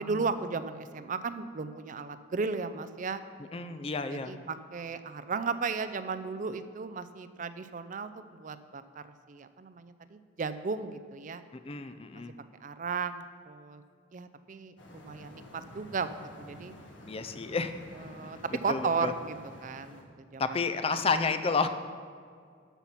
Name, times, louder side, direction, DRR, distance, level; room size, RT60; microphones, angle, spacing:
voice 1, 0.0-3.2 4.1-11.4 12.1-12.2 12.6-13.8 14.1-16.1 16.4-16.7 18.0-19.4 19.6-20.0 20.3-20.4, right 4 dB, 40° right, 12 dB, 0.4 m, -35 dB
voice 2, 3.5-4.3 11.6-12.4 17.1-17.7 18.0-18.1 18.7-19.1 20.4-21.7, left 4 dB, 30° left, 10 dB, 0.5 m, -30 dB
sound 1, 14.8-20.0, left 1 dB, 70° left, 1.6 m, -50 dB
13.0 x 5.8 x 5.7 m, 2.1 s
head